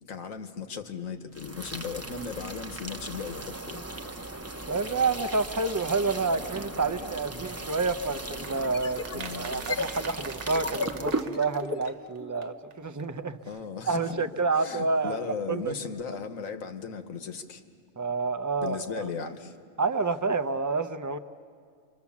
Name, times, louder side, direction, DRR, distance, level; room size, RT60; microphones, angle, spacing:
voice 1, 0.0-3.8 7.3-7.5 9.1-9.5 13.5-14.2 14.6-17.6 18.6-19.6, left 6 dB, 90° left, 8 dB, 1.6 m, -37 dB
sound 1, 1.3-11.3, right 2 dB, 15° right, 0.7 m, -37 dB
voice 2, 4.7-13.4 13.9-15.2 15.5-15.7 18.0-19.3 19.8-21.2, right 4 dB, 30° right, 10 dB, 0.3 m, -29 dB
sound 2, 8.4-12.2 12.4-12.5 12.7-12.8 13.0-13.1, right 6 dB, 60° right, 1.2 m, -43 dB
sound 3, 8.5-12.5, left 4 dB, 45° left, 1.1 m, -36 dB
29.0 x 25.0 x 7.2 m, 2.2 s
omnidirectional pair, 1.4 m